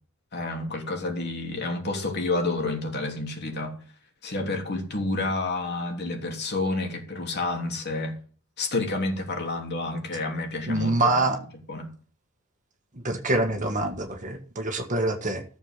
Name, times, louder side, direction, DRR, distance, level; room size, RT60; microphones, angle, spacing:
voice 1, 0.3-3.8 4.2-8.1 8.6-11.1 11.7-11.9, left 2 dB, 50° left, 3.1 m, -29 dB
voice 2, 10.7-11.4 13.0-15.4, right 2 dB, 35° right, 1.6 m, -25 dB
14.0 x 7.1 x 6.7 m
head